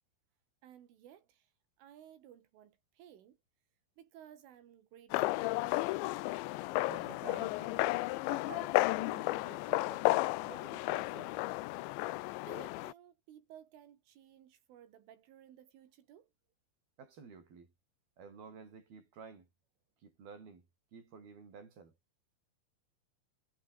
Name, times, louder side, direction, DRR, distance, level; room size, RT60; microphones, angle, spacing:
voice 1, 0.6-3.4 4.0-5.9 12.5-16.3, right 10 dB, 85° right, 5.1 m, -57 dB
sound 1, 5.1-12.9, left 20 dB, 80° left, 2.9 m, -33 dB
voice 2, 6.9-11.4 17.0-17.7 18.2-19.5 20.0-20.7 20.9-21.9, right 5 dB, 50° right, 8.0 m, -52 dB
omnidirectional pair, 5.5 m